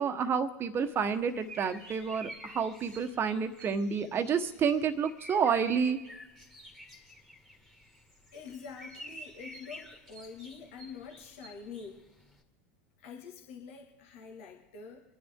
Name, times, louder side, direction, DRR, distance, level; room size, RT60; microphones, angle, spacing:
voice 1, 0.0-6.0, right 6 dB, 35° right, 9 dB, 1.2 m, -29 dB
sound 1, 0.8-12.4, right 1 dB, 5° left, 2.0 m, -50 dB
voice 2, 8.3-12.0 13.0-15.0, left 5 dB, 70° left, 1 dB, 1.9 m, -46 dB
25.5 x 9.8 x 3.7 m, 1.0 s
hypercardioid pair, 95°, 7 cm